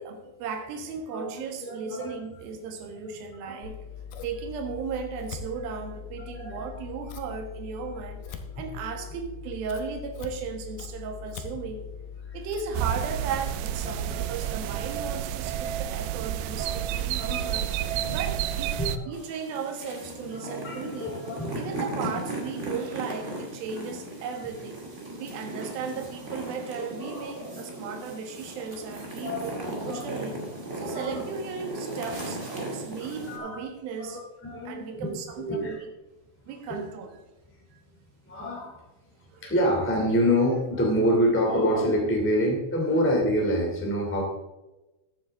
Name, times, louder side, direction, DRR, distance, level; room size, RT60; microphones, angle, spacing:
voice 1, 0.0-3.8 4.2-11.9 12.3-17.7 18.1-18.8 19.1-21.1 21.5-24.8 25.2-30.4 30.7-34.2 34.6-35.8 36.5-37.2 39.3-39.5, right 5 dB, 65° right, 4 dB, 3.1 m, -36 dB
voice 2, 1.6-2.1 3.4-3.5 6.3-6.6 13.8-14.2 16.6-18.2 18.8-19.1 20.3-21.6 27.1-27.3 29.2-30.0 30.8-31.2 33.1-33.6 34.0-35.1 35.4-35.8 38.2-38.8 39.4-44.2, equal, 5° left, -1 dB, 1.6 m, -27 dB
Scissors, 3.6-14.3, left 7 dB, 70° left, 2.0 m, -41 dB
sound 1, 12.7-19.0, right 11 dB, 85° right, 2.8 m, -30 dB
sound 2, 19.1-33.4, right 1 dB, 30° right, 1.3 m, -37 dB
14.5 x 9.2 x 3.6 m, 1.1 s
omnidirectional pair, 4.9 m